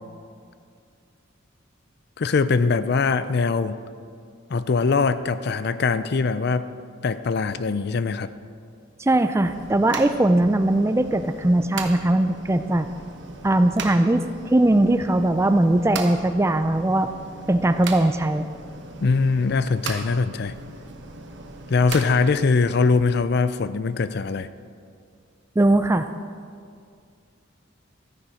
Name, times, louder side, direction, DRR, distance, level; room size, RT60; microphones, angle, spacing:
voice 1, 2.2-3.8 4.5-6.7 7.0-8.3 19.0-20.5 21.7-24.5, left 4 dB, 55° left, 13 dB, 0.4 m, -22 dB
voice 2, 9.0-12.9 13.4-17.1 17.5-18.5 25.6-26.1, right 1 dB, 15° right, 10 dB, 0.3 m, -20 dB
sound 1, 9.4-23.0, right 4 dB, 60° right, 1.1 m, -39 dB
13.5 x 10.0 x 4.9 m, 2.2 s
head